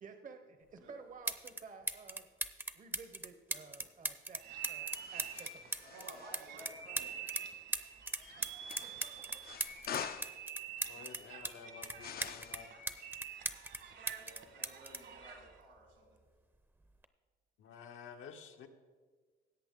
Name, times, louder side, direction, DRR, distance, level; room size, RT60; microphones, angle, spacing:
voice 1, 0.0-2.3 2.7-5.7, right 4 dB, 40° right, 8 dB, 0.8 m, -53 dB
sound 1, 1.3-1.6 1.9-7.4 7.7-11.5 11.8-13.8 14.1-15.9 16.8-17.1, right 2 dB, 10° right, 0.6 m, -39 dB
sound 2, 4.4-15.6, right 7 dB, 65° right, 1.4 m, -48 dB
sound 3, 4.9-6.4 8.6-10.4 12.0-12.7, left 9 dB, 50° left, 0.4 m, -45 dB
voice 2, 5.8-7.2 14.1-16.1, right 1 dB, 85° right, -1 dB, 3.9 m, -54 dB
voice 3, 10.9-12.7 17.6-18.7, left 6 dB, 85° left, 4 dB, 1.0 m, -51 dB
17.0 x 7.9 x 3.6 m, 1.5 s
cardioid pair, 90°, 20 cm